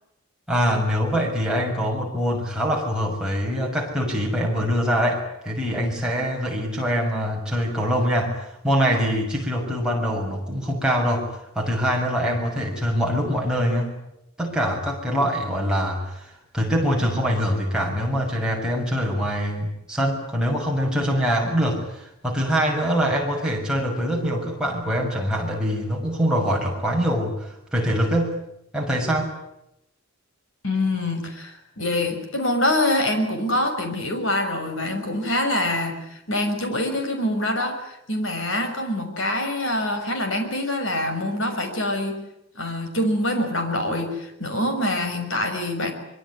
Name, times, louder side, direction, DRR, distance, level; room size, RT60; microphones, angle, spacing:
voice 1, 0.5-13.9 14.4-28.4 28.7-29.3, equal, 5° right, -2 dB, 6.5 m, -24 dB
voice 2, 30.6-42.2 42.5-45.9, left 1 dB, 60° left, 5 dB, 6.1 m, -25 dB
25.0 x 23.5 x 9.8 m, 0.82 s
head